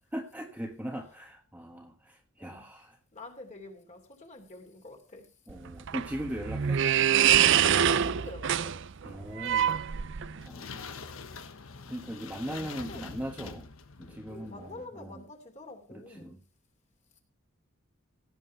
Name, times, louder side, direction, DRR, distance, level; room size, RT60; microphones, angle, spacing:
voice 1, 0.1-3.0 5.5-6.8 9.0-9.8 10.4-10.8 11.9-13.7 14.0-15.2 15.9-16.4, equal, 5° right, 1.3 m, -39 dB
voice 2, 3.1-5.3 7.8-8.7 12.5-13.3 14.3-16.4, left 2 dB, 35° left, 2.9 m, -47 dB
sound 1, 5.5-10.5, right 9 dB, 60° right, 0.6 m, -25 dB
sound 2, 9.9-14.9, left 4 dB, 85° left, 1.3 m, -45 dB
17.0 x 7.7 x 4.5 m
head